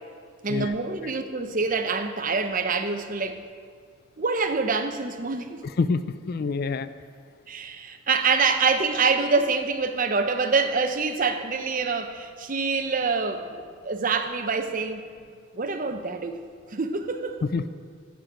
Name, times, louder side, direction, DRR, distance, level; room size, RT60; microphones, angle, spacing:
voice 1, 0.4-3.4 4.2-5.6 7.5-15.0 15.5-16.4 16.7-17.4, right 4 dB, 40° right, 8 dB, 0.6 m, -26 dB
voice 2, 5.6-6.9 17.4-17.7, left 4 dB, 45° left, 13 dB, 0.3 m, -27 dB
12.5 x 8.2 x 5.0 m, 2.1 s
head